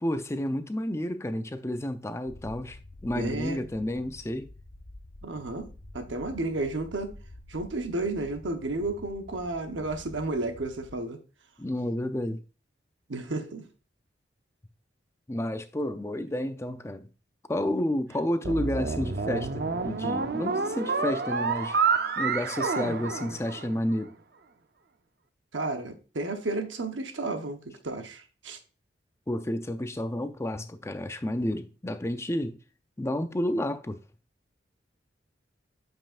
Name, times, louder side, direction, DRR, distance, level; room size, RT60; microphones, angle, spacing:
voice 1, 0.0-4.5 11.6-12.4 15.3-17.1 17.5-21.8 22.2-24.1 29.3-32.6 33.0-34.0, left 1 dB, 15° left, 0.5 m, -30 dB
sound 1, 2.3-11.0, left 1 dB, 80° left, 1.0 m, -48 dB
voice 2, 3.1-3.6 5.2-5.7 5.9-7.1 7.5-11.2 13.1-13.7 25.5-28.6, right 2 dB, 90° right, 1.0 m, -32 dB
sound 2, 18.4-23.9, right 5 dB, 55° right, 0.6 m, -29 dB
8.9 x 5.4 x 2.4 m
head